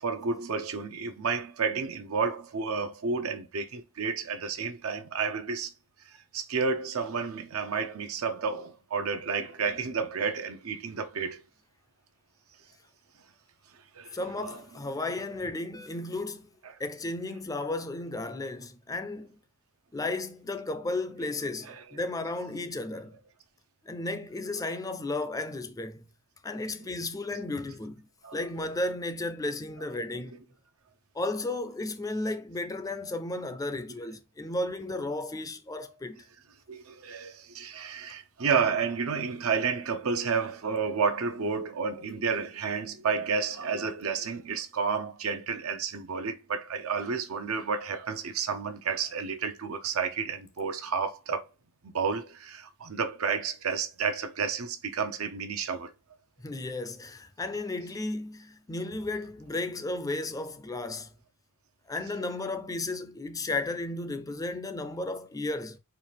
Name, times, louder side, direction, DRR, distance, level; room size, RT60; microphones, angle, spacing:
voice 1, 0.0-5.7 6.3-11.4 13.9-14.6 16.6-16.7 21.6-21.8 26.8-26.9 28.2-28.4 36.7-51.5 51.8-55.9, right 5 dB, 80° right, 0.7 m, -31 dB
voice 2, 14.1-16.5 16.8-19.4 19.9-23.2 23.8-26.0 26.4-28.0 28.3-30.3 31.1-36.3 56.4-61.1 61.9-65.8, left 2 dB, 15° left, 0.4 m, -34 dB
4.5 x 2.4 x 3.3 m
head